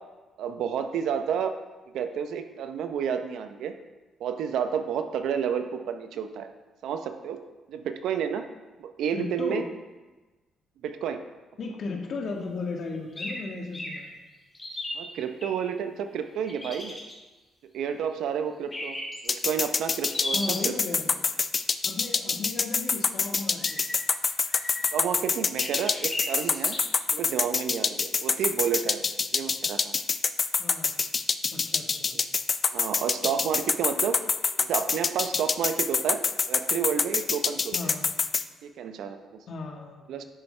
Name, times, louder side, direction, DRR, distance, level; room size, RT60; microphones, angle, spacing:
voice 1, 0.4-1.5 1.9-3.7 4.2-6.5 6.8-7.4 7.7-8.5 8.8-9.6 10.8-11.2 14.9-17.0 17.7-19.0 19.2-21.0 24.9-26.7 27.1-29.0 29.3-30.0 32.7-34.2 34.6-36.2 36.5-37.7 38.6-39.2 40.1-40.3, right 8 dB, 80° right, 8 dB, 0.7 m, -30 dB
voice 2, 9.1-9.7 11.6-14.1 20.3-21.2 21.8-23.8 30.6-30.9 31.5-32.2 37.7-38.1 39.5-40.0, left 3 dB, 60° left, 2 dB, 1.4 m, -35 dB
sound 1, 13.2-13.4 13.7-14.0 14.5-15.5 16.4-17.1 18.7-19.3 20.1-20.7 23.6-23.9 24.5-25.1 25.6-26.8, left 1 dB, 20° left, 2.6 m, -35 dB
sound 2, 19.3-38.4, left 5 dB, 40° left, 0.4 m, -25 dB
10.5 x 7.9 x 3.3 m, 1.2 s
cardioid pair, 90°, 0 cm